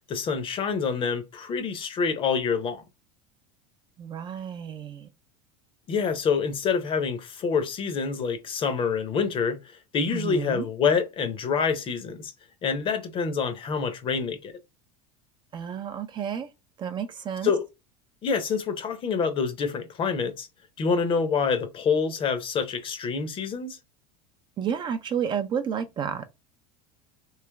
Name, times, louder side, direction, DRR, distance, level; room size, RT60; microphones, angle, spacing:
voice 1, 0.1-2.8 5.9-9.6 9.9-12.3 12.6-14.5 17.4-17.7 18.2-20.5 20.8-23.8, left 5 dB, 35° left, 0.7 m, -26 dB
voice 2, 4.0-5.1 10.1-10.7 15.5-16.5 16.8-17.5 24.6-26.2, right 8 dB, 30° right, 0.4 m, -31 dB
3.2 x 2.9 x 3.4 m
supercardioid pair, 120°, 15 cm